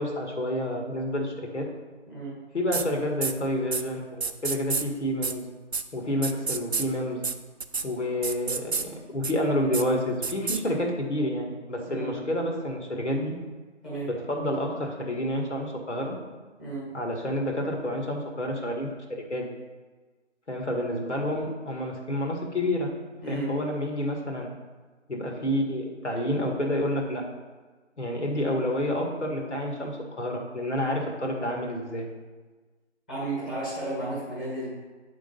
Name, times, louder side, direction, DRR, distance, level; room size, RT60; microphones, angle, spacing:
voice 1, 0.0-1.7 2.5-5.5 5.9-7.3 7.8-13.4 14.0-16.2 16.9-18.9 19.3-19.5 20.5-22.9 23.3-24.5 25.1-27.2 28.0-32.1, left 1 dB, 70° left, 0 dB, 1.8 m, -29 dB
sound 1, 2.7-2.8 3.2-3.3 3.7-3.8 4.2-4.8 5.2-5.3 5.7-5.8 6.2-6.8 7.2-7.3 7.6-7.8 8.2-8.8 9.2-9.3 9.7-9.8 10.2-10.6, right 5 dB, 60° right, 0.6 m, -28 dB
voice 2, 23.2-23.5 33.1-34.7, right 2 dB, 5° left, -10 dB, 1.6 m, -33 dB
9.3 x 3.8 x 5.4 m, 1.3 s
figure-of-eight pair, 165°, 36 cm